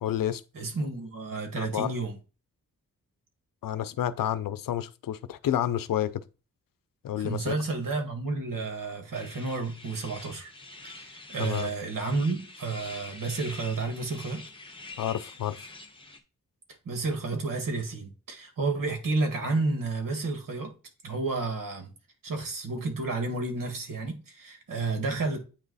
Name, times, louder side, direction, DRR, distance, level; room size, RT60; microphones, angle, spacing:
voice 1, 0.0-0.4 1.6-1.9 3.6-6.1 7.0-7.5 11.4-11.7 15.0-15.6, left 11 dB, 90° left, 0.6 m, -29 dB
voice 2, 0.5-2.2 7.2-10.5 10.8-14.4 16.9-20.7 21.0-21.9 22.2-25.4, right 3 dB, 80° right, 1.8 m, -31 dB
sound 1, 9.1-16.2, left 2 dB, 15° left, 1.2 m, -46 dB
8.7 x 3.1 x 4.0 m
cardioid pair, 70°, 33 cm